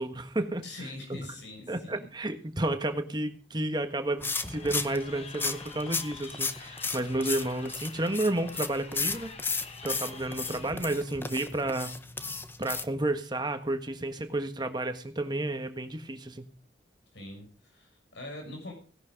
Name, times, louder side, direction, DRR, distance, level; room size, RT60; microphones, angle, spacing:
voice 1, 0.0-0.6 1.1-1.2 1.7-9.3 9.8-11.9 12.6-16.5, right 1 dB, 25° right, 7 dB, 1.4 m, -31 dB
voice 2, 0.6-2.1 17.1-18.7, left 2 dB, 75° left, 2 dB, 6.6 m, -43 dB
Crowd, 4.2-10.7, left 5 dB, 35° left, 1.3 m, -47 dB
sound 1, 4.2-12.8, left 4 dB, 10° left, 0.7 m, -35 dB
17.0 x 10.5 x 5.2 m, 0.40 s
head